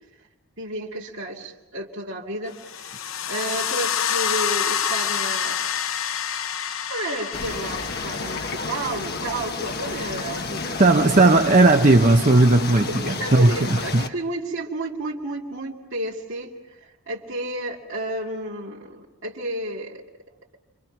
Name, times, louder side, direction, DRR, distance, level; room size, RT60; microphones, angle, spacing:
voice 1, 0.6-2.9 3.3-5.6 6.9-11.2 12.9-20.0, right 1 dB, 60° right, 2.7 m, -32 dB
sound 1, 2.6-9.5, left 8 dB, 65° left, 0.8 m, -28 dB
sound 2, 7.3-14.1, left 4 dB, 50° left, 1.4 m, -31 dB
voice 2, 10.8-14.0, right 2 dB, 35° right, 0.9 m, -16 dB
30.0 x 25.0 x 6.0 m
head